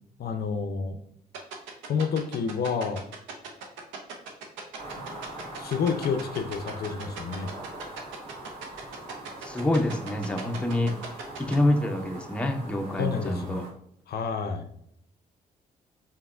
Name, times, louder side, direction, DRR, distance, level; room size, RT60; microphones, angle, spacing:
voice 1, 0.2-1.0 1.8-3.0 5.6-7.5 13.0-13.7 14.1-14.7, left 5 dB, 50° left, 7 dB, 0.5 m, -29 dB
sound 1, 1.3-11.6, right 6 dB, 75° right, 0.7 m, -38 dB
sound 2, 4.8-13.7, right 2 dB, 55° right, 1.4 m, -42 dB
voice 2, 9.4-10.9 11.4-13.6, left 1 dB, 5° left, 4 dB, 0.5 m, -26 dB
4.8 x 2.8 x 2.4 m, 0.72 s
hypercardioid pair, 45°, 20 cm